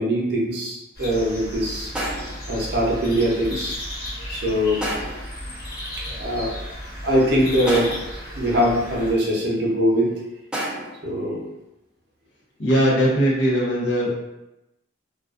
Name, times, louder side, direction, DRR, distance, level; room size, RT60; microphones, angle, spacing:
voice 1, 0.0-1.9 2.5-3.8 4.3-4.9 5.4-5.5 6.0-6.6 7.0-7.9 8.3-10.1 11.0-11.4, equal, 60° right, -3 dB, 0.6 m, -22 dB
sound 1, 0.9-9.1, left 1 dB, 50° left, 1.0 m, -34 dB
sound 2, 2.0-2.5 4.8-5.3 7.7-8.2 10.5-11.0, right 1 dB, 5° right, 0.4 m, -29 dB
voice 2, 12.6-14.1, equal, 80° left, -4 dB, 0.7 m, -19 dB
2.4 x 2.2 x 2.4 m, 0.93 s
head